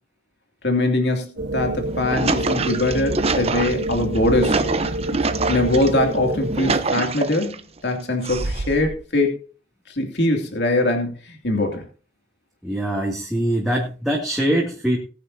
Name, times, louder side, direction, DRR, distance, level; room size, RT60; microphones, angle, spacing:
voice 1, 0.6-4.7 5.5-9.4 9.9-11.8, left 2 dB, 70° left, 3 dB, 2.8 m, -22 dB
sound 1, 1.4-6.8, right 1 dB, 90° right, 1.3 m, -27 dB
sound 2, 1.8-5.9 6.3-7.6 8.2-8.9, right 3 dB, 35° right, 0.9 m, -25 dB
voice 2, 12.6-15.0, right 1 dB, ahead, -3 dB, 2.5 m, -23 dB
19.5 x 10.0 x 2.8 m, 0.35 s
head